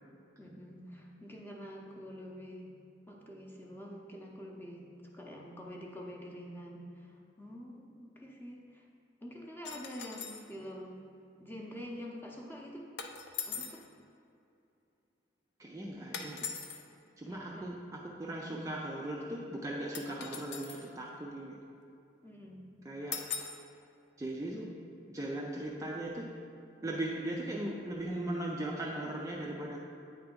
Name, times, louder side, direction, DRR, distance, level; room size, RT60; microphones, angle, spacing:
voice 1, 0.4-2.7 3.1-8.9 9.2-11.0 11.4-12.9 13.5-13.9 17.2-17.8 18.5-18.6 22.2-22.6, equal, 10° left, -1 dB, 0.7 m, -46 dB
sound 1, 9.6-10.5 13.0-13.8 16.1-16.8 19.9-20.9 23.1-23.6, left 6 dB, 65° left, 0.5 m, -40 dB
voice 2, 15.6-16.5 17.2-21.6 22.8-23.3 24.2-24.8 25.1-26.4 26.8-29.8, right 1 dB, 15° right, -2 dB, 0.4 m, -38 dB
8.7 x 3.4 x 5.1 m, 2.7 s
head